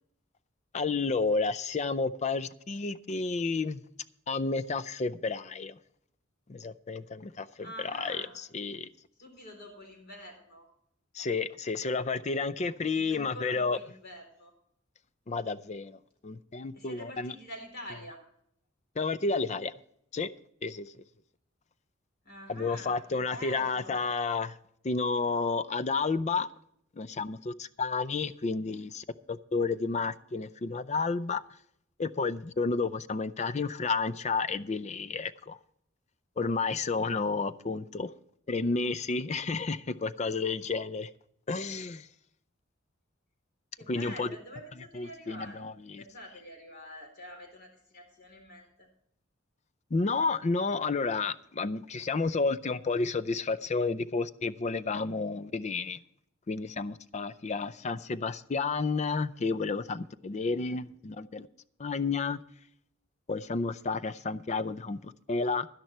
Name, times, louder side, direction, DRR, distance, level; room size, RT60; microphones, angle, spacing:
voice 1, 0.7-3.8 4.3-5.8 6.5-8.9 11.1-13.8 15.3-17.3 19.0-19.7 20.1-20.3 20.6-20.9 22.5-24.5 24.8-26.5 27.0-31.4 32.0-35.6 36.4-38.1 38.5-41.1 41.5-42.1 43.9-44.3 44.9-46.0 49.9-56.0 56.5-61.5 61.8-62.4 63.3-65.7, left 4 dB, 35° left, 0.5 m, -31 dB
voice 2, 7.6-8.4 9.2-10.7 12.9-14.5 16.7-18.2 22.2-24.1 43.8-45.7 46.0-48.9 60.4-60.8, equal, 55° left, 4.1 m, -46 dB
12.0 x 10.5 x 4.5 m
head